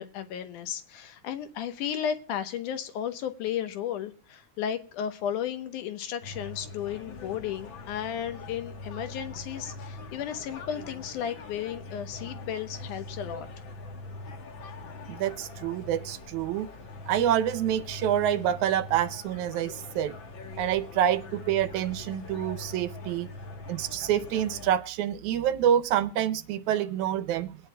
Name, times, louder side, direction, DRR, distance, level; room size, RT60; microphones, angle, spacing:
voice 1, 0.0-13.5, left 9 dB, 80° left, 9 dB, 2.5 m, -34 dB
sound 1, 6.2-24.8, left 2 dB, 55° left, 1.6 m, -42 dB
voice 2, 15.1-16.7 17.1-20.1 20.6-23.3 23.7-27.6, right 10 dB, 75° right, 11 dB, 2.1 m, -27 dB
22.5 x 10.0 x 2.2 m, 0.43 s
omnidirectional pair, 3.6 m